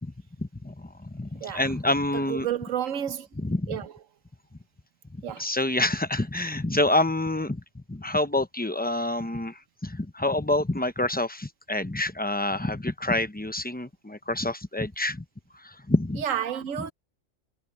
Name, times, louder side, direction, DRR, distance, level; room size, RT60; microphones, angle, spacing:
voice 1, 0.4-2.5 3.4-3.8 5.4-15.2 15.5-16.2, left 2 dB, 10° left, 0.6 m, -27 dB
voice 2, 2.3-3.3 3.7-3.9 5.2-5.5 16.2-16.9, right 9 dB, 80° right, 1.3 m, -30 dB
omnidirectional pair, 1.3 m